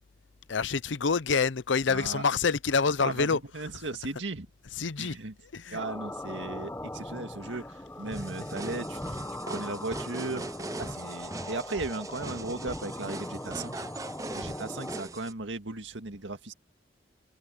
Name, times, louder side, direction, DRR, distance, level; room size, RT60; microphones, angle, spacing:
voice 1, 0.5-3.4 4.8-5.2 5.5-5.8, left 5 dB, 85° left, 0.7 m, -27 dB
voice 2, 1.9-2.2 3.0-4.5 5.0-5.3 5.7-9.2 9.5-10.5 10.8-13.9 14.3-16.5, right 2 dB, 85° right, 2.0 m, -36 dB
sound 1, 5.8-15.0, left 1 dB, 10° left, 1.0 m, -40 dB
sound 2, 8.1-15.3, right 2 dB, 15° right, 0.7 m, -40 dB
head